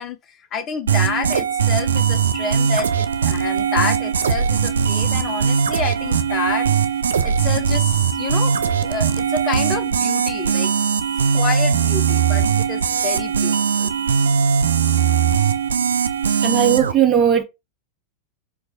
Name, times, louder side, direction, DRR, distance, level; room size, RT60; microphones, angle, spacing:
voice 1, 0.0-6.7 7.2-8.5 8.8-10.8 11.3-13.9, left 6 dB, 30° left, 0.5 m, -29 dB
sound 1, 0.9-16.9, right 7 dB, 70° right, 0.4 m, -20 dB
voice 2, 16.4-17.4, right 9 dB, 25° right, 0.8 m, -17 dB
4.5 x 2.2 x 3.9 m
figure-of-eight pair, 90°, 0 cm